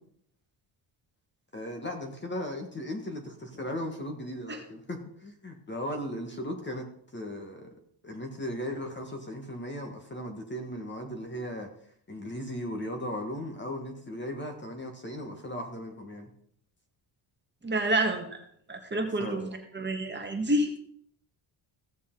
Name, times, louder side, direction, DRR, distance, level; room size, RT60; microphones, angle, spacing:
voice 1, 1.5-6.9 7.1-7.7 8.0-11.7 12.1-16.3 19.1-19.5, equal, 25° left, 4 dB, 1.5 m, -37 dB
voice 2, 17.6-18.2 18.7-20.7, right 1 dB, 20° right, 3 dB, 1.6 m, -28 dB
16.0 x 6.7 x 3.8 m, 0.65 s
cardioid pair, 125°, 48 cm